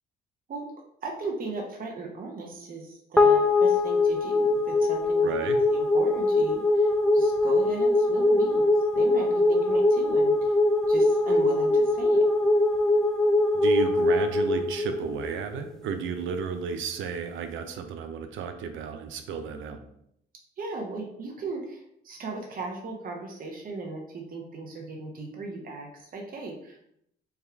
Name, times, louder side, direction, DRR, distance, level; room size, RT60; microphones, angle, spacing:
voice 1, 1.0-8.6 8.9-10.6 10.9-12.2 20.6-26.9, right 3 dB, 45° right, 1 dB, 0.9 m, -37 dB
sound 1, 3.2-15.7, left 2 dB, 5° left, 0.4 m, -22 dB
voice 2, 5.2-5.6 13.5-19.8, right 6 dB, 80° right, 7 dB, 0.5 m, -33 dB
3.5 x 2.3 x 4.4 m, 0.73 s
cardioid pair, 90°, 20 cm